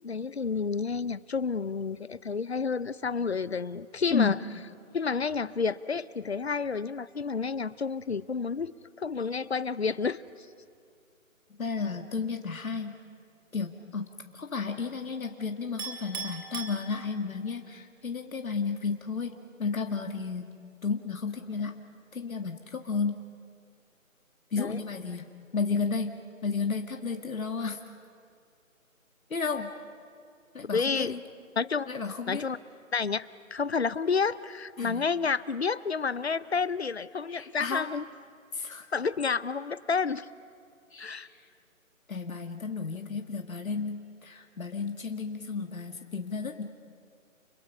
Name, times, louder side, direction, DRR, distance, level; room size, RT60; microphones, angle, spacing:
voice 1, 0.0-4.4 4.9-10.2 24.6-24.8 30.7-31.1 31.6-31.9 32.3-32.6 32.9-33.3 33.5-38.0 38.9-40.3 41.0-41.3, left 5 dB, 50° left, 17 dB, 0.8 m, -30 dB
voice 2, 4.1-4.4 11.6-12.9 13.5-14.1 14.3-20.5 20.8-21.8 22.1-23.2 24.5-26.1 26.4-27.8 29.3-29.7 30.5-31.2 31.9-32.5 34.8-35.1 37.3-37.9 38.5-38.9 40.9-41.5 42.1-46.6, left 5 dB, 75° left, 4 dB, 2.0 m, -32 dB
Chink clink, 15.8-17.5, right 5 dB, 15° right, 1.9 m, -39 dB
30.0 x 29.0 x 5.6 m, 2.3 s
figure-of-eight pair, 170°, 41 cm